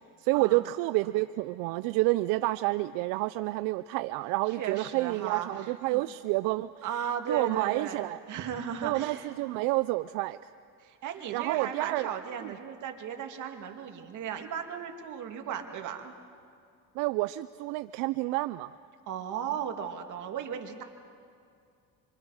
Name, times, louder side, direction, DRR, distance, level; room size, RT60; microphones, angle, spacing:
voice 1, 0.0-6.7 7.3-8.2 8.8-10.5 11.3-12.1 17.0-18.7, right 19 dB, 90° right, 13 dB, 0.5 m, -29 dB
voice 2, 4.6-5.5 5.9-6.0 6.8-9.3 10.8-16.1 19.1-20.8, right 8 dB, 65° right, 4 dB, 2.1 m, -36 dB
25.5 x 24.5 x 4.8 m, 2.4 s
cardioid pair, 105°, 33 cm